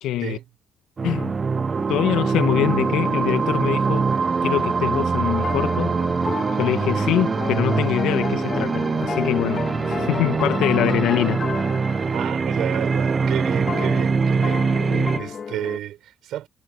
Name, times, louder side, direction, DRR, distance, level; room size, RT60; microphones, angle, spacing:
voice 1, 0.0-0.4 1.0-1.4 1.9-4.1 4.4-5.9 6.6-11.4 14.9-15.2, left 13 dB, 75° left, 1.8 m, -24 dB
sound 1, 1.0-15.2, right 5 dB, 35° right, 0.5 m, -23 dB
sound 2, 5.3-15.8, left 6 dB, 45° left, 3.6 m, -32 dB
voice 2, 12.1-16.5, right 12 dB, 70° right, 7.1 m, -32 dB
supercardioid pair, 70°, 0 cm